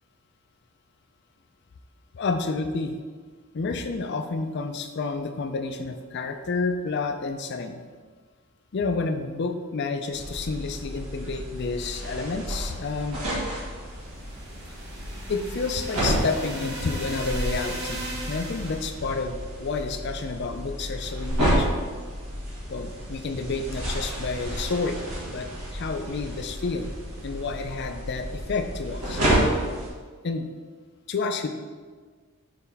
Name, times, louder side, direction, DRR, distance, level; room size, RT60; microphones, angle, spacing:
voice 1, 2.1-2.9 3.5-7.8 8.7-13.2 15.3-21.8 22.7-26.9 27.2-29.2 30.2-30.5 31.1-31.5, left 4 dB, 50° left, 6 dB, 0.4 m, -30 dB
sound 1, 10.1-29.9, right 1 dB, 85° right, 1.8 m, -31 dB
sound 2, 14.0-18.9, right 1 dB, 50° right, 1.1 m, -37 dB
6.8 x 4.1 x 3.4 m, 1.5 s
head